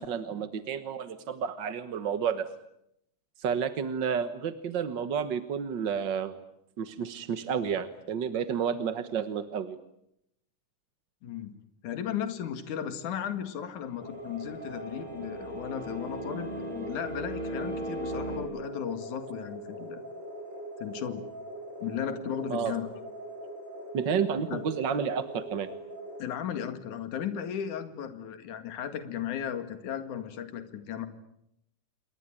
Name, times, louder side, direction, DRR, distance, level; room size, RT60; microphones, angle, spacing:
voice 1, 0.0-2.5 3.4-6.3 6.8-9.8 22.5-22.8 23.9-25.7, right 7 dB, 55° right, 11 dB, 1.4 m, -31 dB
voice 2, 11.2-11.5 11.8-20.0 20.8-21.2 21.8-22.9 24.5-24.6 26.2-31.1, left 9 dB, 75° left, 9 dB, 3.4 m, -35 dB
sound 1, 13.9-18.4, right 1 dB, 15° right, 6.7 m, -38 dB
sound 2, 14.0-26.2, right 1 dB, 35° right, 7.7 m, -42 dB
29.0 x 22.0 x 9.0 m, 0.79 s
omnidirectional pair, 3.5 m